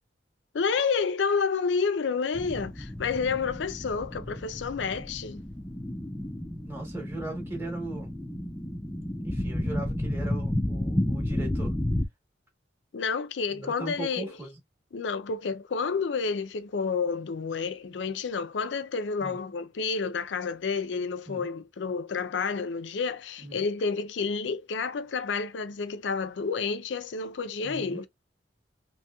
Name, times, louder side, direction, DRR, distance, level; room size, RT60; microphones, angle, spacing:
voice 1, 0.5-5.4 12.9-14.3 14.9-28.1, left 5 dB, 75° left, 0.5 m, -30 dB
sound 1, 2.3-12.1, left 1 dB, 10° left, 0.4 m, -32 dB
voice 2, 6.6-8.1 9.2-11.7 13.6-14.5 19.2-19.4 21.3-21.5 23.4-23.6 27.6-28.0, right 2 dB, 10° right, 1.1 m, -38 dB
3.0 x 2.9 x 2.2 m
head